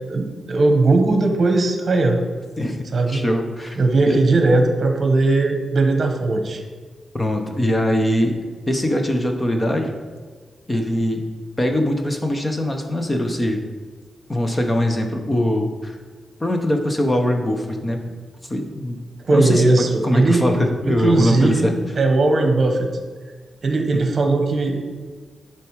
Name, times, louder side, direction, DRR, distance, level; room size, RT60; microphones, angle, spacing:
voice 1, 0.1-2.2 2.9-3.2 3.8-6.6 19.3-20.5 20.8-21.7 22.0-22.9 23.6-24.8, right 2 dB, 45° right, 4 dB, 1.2 m, -18 dB
voice 2, 3.1-3.8 4.1-4.2 7.1-8.4 8.7-9.9 10.7-11.2 11.6-13.6 14.3-16.0 16.4-18.1 18.5-19.0 19.3-21.7 23.9-24.0, left 1 dB, 20° left, 4 dB, 0.9 m, -21 dB
10.5 x 4.7 x 4.7 m, 1.5 s
wide cardioid pair, 160°, 0 cm